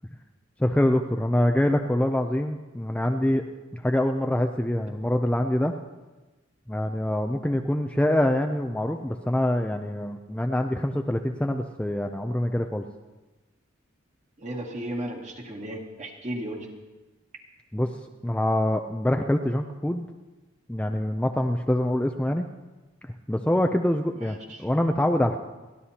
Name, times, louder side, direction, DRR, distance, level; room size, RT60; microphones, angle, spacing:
voice 1, 0.6-3.4 3.7-5.7 6.7-12.9 17.7-17.9 18.2-20.1 20.7-22.4 23.3-25.4, left 1 dB, 5° left, 5 dB, 0.4 m, -25 dB
voice 2, 14.4-16.7 24.1-24.6, right 1 dB, 35° right, -1 dB, 2.1 m, -35 dB
29.5 x 11.5 x 2.9 m, 1.2 s
head